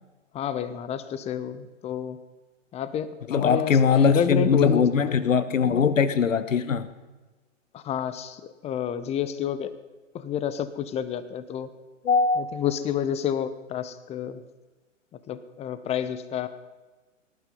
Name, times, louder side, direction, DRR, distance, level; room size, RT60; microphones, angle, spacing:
voice 1, 0.3-2.2 2.7-5.2 7.7-9.7 10.1-11.7 12.4-14.4 15.3-16.5, left 9 dB, 15° left, 13 dB, 0.8 m, -29 dB
voice 2, 3.3-6.9 12.0-12.4, left 6 dB, 80° left, 13 dB, 1.2 m, -21 dB
19.0 x 11.5 x 5.5 m, 1.2 s
hypercardioid pair, 120°, 38 cm